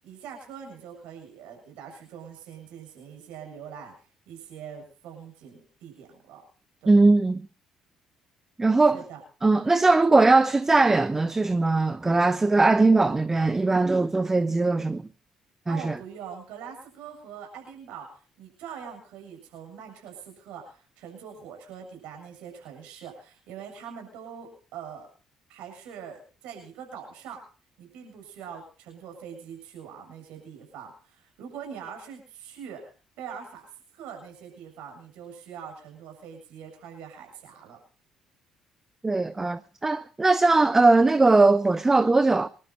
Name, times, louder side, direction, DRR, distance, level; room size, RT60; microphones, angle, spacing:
voice 1, 0.0-3.9 4.3-6.4 6.8-6.9 8.9-9.2 15.7-25.1 25.5-27.4 27.8-32.8 33.2-33.6 33.9-37.8, right 7 dB, 60° right, 7.3 m, -43 dB
voice 2, 6.9-7.5 8.6-9.0 9.4-15.1 15.7-16.0 39.0-42.5, right 3 dB, 20° right, 0.8 m, -20 dB
26.0 x 12.0 x 4.1 m
figure-of-eight pair, 50°, 2 cm